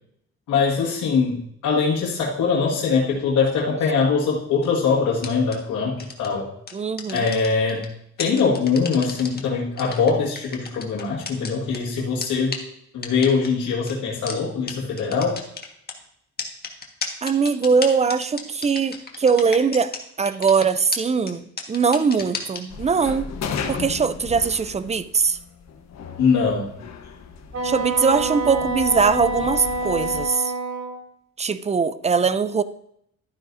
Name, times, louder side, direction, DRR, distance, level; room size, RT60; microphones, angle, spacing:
voice 1, 0.5-6.5 7.1-7.8 8.2-12.6 12.9-15.4 26.2-26.7, left 5 dB, 80° left, -5 dB, 2.0 m, -22 dB
sound 1, 5.2-5.6 6.0-6.3 6.7-7.9 8.2-9.4 9.8-11.8 12.2-12.3 12.5-12.6 13.0-13.5 13.9-14.0 14.3-14.4 14.7-14.8 15.0-15.9 16.4-20.0 20.3-20.6 20.9-21.0 21.3-21.4 21.6-22.6, left 5 dB, 30° left, 1.7 m, -31 dB
voice 2, 6.7-7.3 17.2-19.9 20.2-23.3 23.7-25.4 27.6-30.5 31.4-32.6, right 5 dB, 20° right, 13 dB, 0.6 m, -21 dB
sound 2, 22.7-30.3, left 6 dB, 60° left, 1.3 m, -35 dB
Wind instrument woodwind instrument, 27.5-31.0, right 2 dB, 60° right, 3.6 m, -27 dB
12.5 x 10.0 x 2.7 m, 0.74 s
cardioid pair, 90°, 30 cm